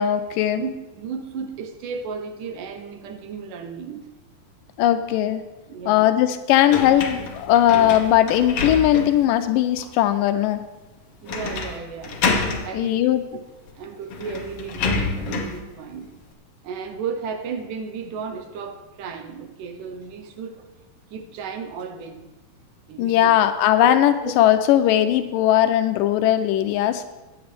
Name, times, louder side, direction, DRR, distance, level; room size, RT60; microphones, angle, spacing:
voice 1, 0.0-0.6 4.8-5.4 5.9-10.6 12.7-13.2 23.0-27.0, left 11 dB, 90° left, 9 dB, 2.3 m, -19 dB
voice 2, 0.6-4.1 5.7-6.1 11.2-12.2 12.7-13.1 13.8-16.1 16.6-20.7 21.1-22.2 22.9-23.5 23.8-24.3, right 6 dB, 75° right, 6 dB, 2.5 m, -34 dB
sound 1, 6.7-9.3 9.8-9.9 11.3-11.8 12.0-12.7 13.7-13.8 14.1-15.6, left 4 dB, 55° left, 1.9 m, -27 dB
22.5 x 8.8 x 3.4 m, 1.1 s
omnidirectional pair, 3.8 m